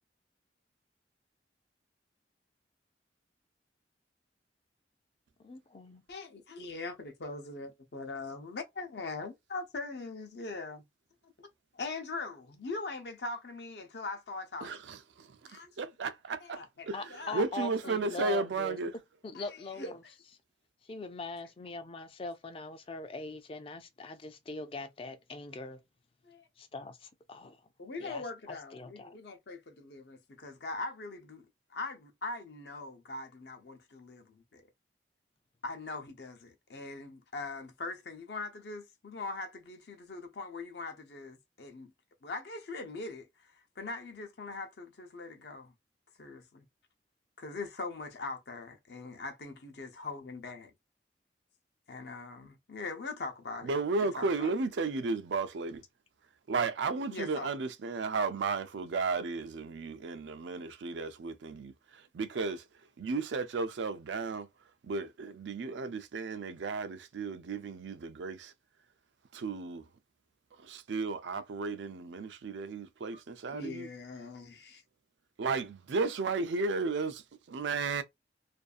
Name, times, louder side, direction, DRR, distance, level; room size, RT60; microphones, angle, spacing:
voice 1, 5.4-6.0 16.9-18.8 19.2-20.0 20.8-25.8 26.6-27.6 28.0-29.2, left 3 dB, 30° left, 0.4 m, -42 dB
voice 2, 6.1-10.8 11.2-11.3 11.7-14.7 15.4-15.7 16.4-17.4 19.3-19.9 26.2-26.5 27.8-34.6 35.6-41.9 42.2-45.7 46.2-46.6 47.4-50.7 51.9-53.7 54.0-54.5 57.1-57.5 73.5-74.8, left 3 dB, 65° left, 0.6 m, -41 dB
voice 3, 14.6-16.6 16.9-18.9 53.6-55.8 56.5-62.7 63.0-64.5 64.8-68.5 69.3-69.9 70.6-73.9 75.4-78.0, right 4 dB, 85° right, 0.4 m, -34 dB
2.6 x 2.3 x 2.4 m
head